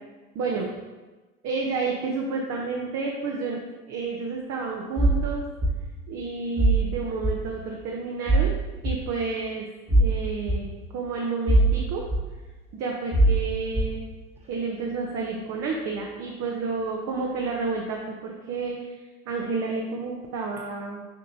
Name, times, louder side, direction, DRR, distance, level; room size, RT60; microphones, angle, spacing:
voice 1, 0.4-0.7 1.4-3.6 3.9-5.4 6.1-8.5 8.8-9.7 10.0-10.7 10.9-12.0 12.7-14.0 14.5-18.9 19.3-21.0, right 4 dB, 40° right, -1 dB, 1.0 m, -30 dB
sound 1, 5.0-5.2 5.6-5.7 6.6-6.8 7.2-7.4 8.3-8.5 8.8-8.9 9.9-10.1 10.5-10.6 11.5-11.7 12.1-12.2 13.1-13.4 13.7-13.9, right 1 dB, 15° right, 1.4 m, -19 dB
7.2 x 5.2 x 2.9 m, 1.2 s
figure-of-eight pair, 75°, 43 cm